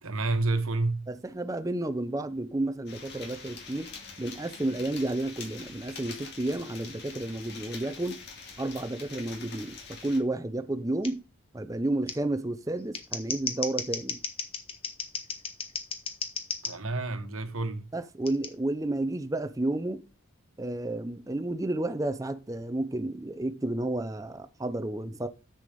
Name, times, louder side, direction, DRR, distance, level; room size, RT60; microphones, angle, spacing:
voice 1, 0.0-1.0 16.6-17.9, right 2 dB, 85° right, 1.2 m, -29 dB
voice 2, 1.1-3.9 4.2-8.2 8.6-11.2 11.5-14.2 17.9-20.0 20.6-25.3, right 2 dB, 15° right, 0.5 m, -31 dB
sound 1, 2.9-10.2, left 4 dB, 55° left, 2.2 m, -45 dB
Scissors, 11.0-11.1 12.1-12.2 12.8-16.7 18.3-18.5, left 5 dB, 25° left, 1.1 m, -34 dB
7.0 x 6.8 x 5.0 m
head